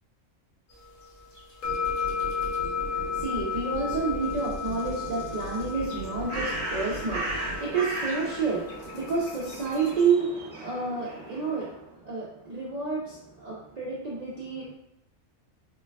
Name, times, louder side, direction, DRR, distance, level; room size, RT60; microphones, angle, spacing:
sound 1, 0.7-10.1, left 6 dB, 75° left, 1.2 m, -34 dB
sound 2, 1.6-7.6, right 1 dB, 35° left, 0.6 m, -38 dB
voice 1, 2.7-14.7, right 4 dB, 70° right, -6 dB, 0.3 m, -30 dB
Bird, 5.8-11.8, right 1 dB, 45° right, 0.7 m, -36 dB
3.9 x 2.2 x 2.2 m, 0.80 s
omnidirectional pair, 1.4 m